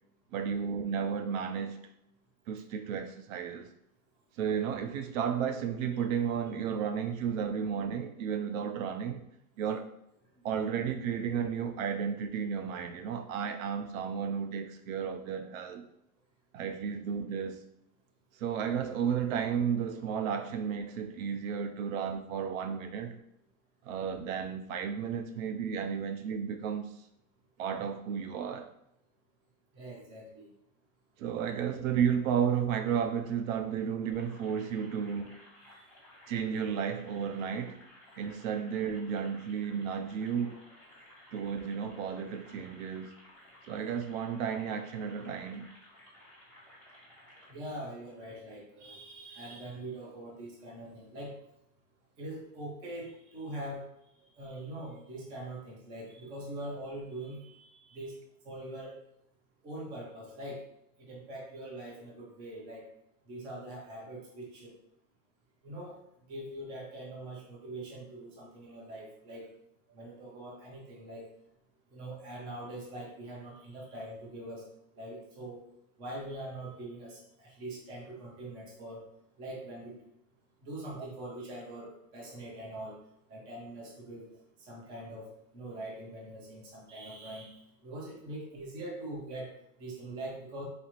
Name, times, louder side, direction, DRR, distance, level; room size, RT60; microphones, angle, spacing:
voice 1, 0.3-1.8 2.5-3.7 4.4-9.2 9.6-9.9 10.4-15.9 16.5-17.6 18.4-23.2 23.8-26.9 27.6-28.7 31.2-35.4 36.3-37.8 38.2-40.6 41.3-43.1 43.7-45.7 81.0-81.1, right 7 dB, 65° right, 0.5 m, -33 dB
voice 2, 29.7-30.5 35.7-35.9 47.5-51.3 52.2-53.8 54.3-58.2 58.4-59.0 59.6-60.6 61.0-62.9 63.3-64.7 65.6-69.5 69.9-71.3 71.9-74.6 74.9-75.6 76.0-79.0 79.4-80.0 80.6-83.0 83.3-84.3 84.6-89.5 89.8-90.6, right 1 dB, 10° right, 0.3 m, -43 dB
sound 1, 34.1-47.5, left 1 dB, 5° left, 1.0 m, -56 dB
4.1 x 2.5 x 3.0 m
supercardioid pair, 145°, 45 cm